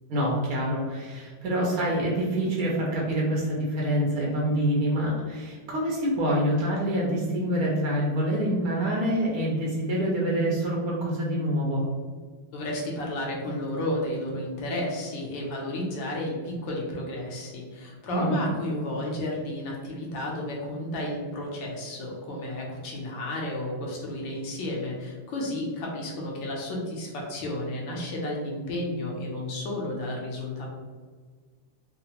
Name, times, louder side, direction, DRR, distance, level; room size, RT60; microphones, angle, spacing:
voice 1, 0.1-11.9 18.1-18.3, equal, 85° right, -3 dB, 0.7 m, -26 dB
voice 2, 12.5-30.7, left 1 dB, 70° left, -2 dB, 1.3 m, -32 dB
3.7 x 2.0 x 2.8 m, 1.5 s
omnidirectional pair, 2.3 m